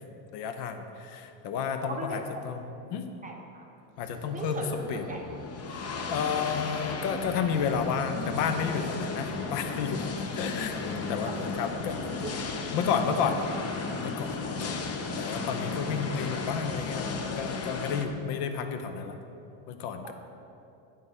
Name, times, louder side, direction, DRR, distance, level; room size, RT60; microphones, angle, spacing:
voice 1, 0.3-3.0 4.0-5.0 5.8-12.0 12.7-13.4 14.0-14.3 14.6-14.8 15.2-19.2 19.7-20.1, left 6 dB, 75° left, 7 dB, 0.8 m, -31 dB
voice 2, 1.9-2.2 2.8-2.9 3.2-3.7 4.3-5.2 12.2-12.3 20.0-20.1, right 2 dB, 15° right, 0 dB, 1.0 m, -37 dB
sound 1, 4.0-18.1, left 4 dB, 30° left, 0.7 m, -35 dB
11.0 x 3.8 x 5.4 m, 2.7 s
supercardioid pair, 110°, 48 cm